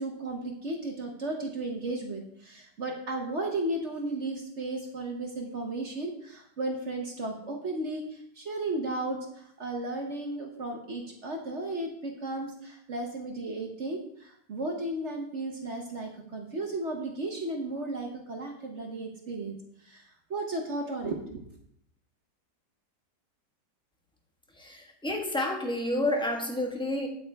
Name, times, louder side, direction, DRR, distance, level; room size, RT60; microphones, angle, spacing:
voice 1, 0.0-19.5 19.8-20.0 20.3-21.4, right 2 dB, 45° right, 2 dB, 1.2 m, -34 dB
voice 2, 24.6-27.1, left 1 dB, 5° left, 1 dB, 1.1 m, -30 dB
8.8 x 8.6 x 3.5 m, 0.72 s
omnidirectional pair, 1.9 m